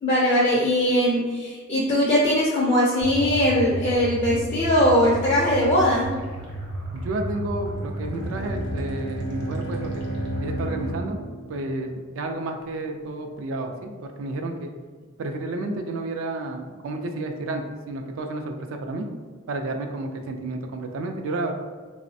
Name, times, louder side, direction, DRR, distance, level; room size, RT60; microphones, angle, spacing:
voice 1, 0.0-6.1, equal, 30° left, -6 dB, 0.4 m, -20 dB
sound 1, 3.0-11.0, equal, 60° right, 0.8 m, -32 dB
voice 2, 6.9-10.0 10.4-14.7 15.2-19.1 19.5-21.5, right 2 dB, 75° right, 4 dB, 0.3 m, -31 dB
Bowed string instrument, 7.6-12.4, right 3 dB, 70° left, 0.6 m, -35 dB
3.3 x 2.0 x 2.6 m, 1.5 s
head